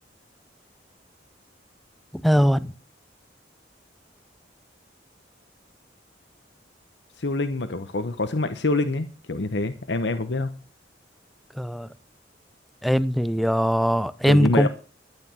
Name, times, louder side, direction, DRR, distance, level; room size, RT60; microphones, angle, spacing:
voice 1, 2.2-2.7 11.6-11.9 12.8-14.7, equal, ahead, 0.6 m, -21 dB
voice 2, 7.2-10.5 14.3-14.7, left 2 dB, 70° left, 1.0 m, -26 dB
12.5 x 9.6 x 5.6 m
head